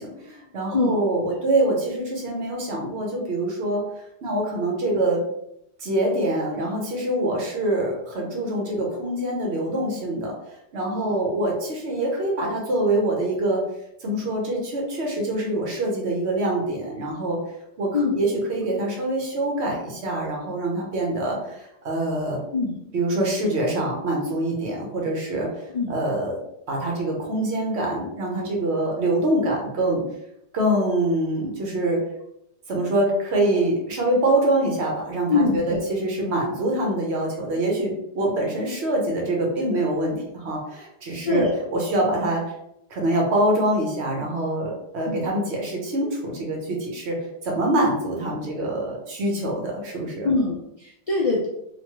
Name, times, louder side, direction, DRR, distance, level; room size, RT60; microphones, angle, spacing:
voice 1, 0.0-3.8 4.2-5.2 5.8-10.3 10.7-13.6 14.0-17.4 17.8-22.4 22.9-26.4 26.7-30.0 30.5-32.0 32.7-42.4 42.9-50.3, right 1 dB, 70° right, -1 dB, 1.1 m, -25 dB
voice 2, 35.3-35.8 41.2-41.6 45.1-45.3 50.2-51.5, left 3 dB, 60° left, -3 dB, 0.3 m, -23 dB
3.1 x 2.2 x 2.9 m, 0.79 s
omnidirectional pair, 1.2 m